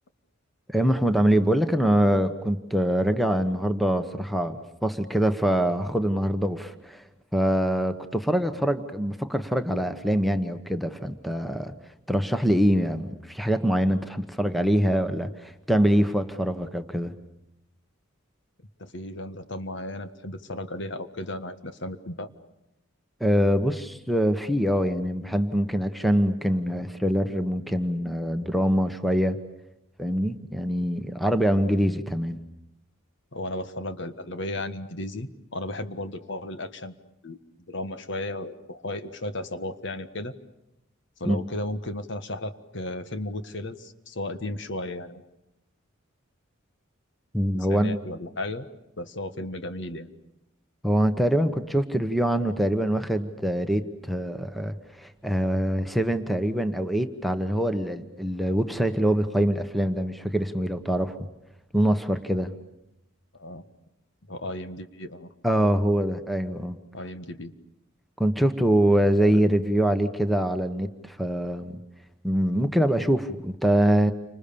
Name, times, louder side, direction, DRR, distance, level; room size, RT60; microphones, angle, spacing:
voice 1, 0.7-7.0 7.3-11.7 12.1-17.1 23.2-29.4 30.0-32.4 41.2-41.4 47.3-48.0 50.8-61.2 61.7-62.5 65.4-66.8 68.2-71.8 72.2-74.1, equal, ahead, 9 dB, 1.2 m, -24 dB
voice 2, 18.8-22.3 33.3-37.4 37.7-40.3 41.2-45.2 47.5-48.6 49.0-50.1 63.3-63.6 64.3-65.3 66.9-67.5 69.3-69.6, left 1 dB, 60° left, 10 dB, 1.6 m, -35 dB
30.0 x 26.0 x 7.0 m, 0.88 s
head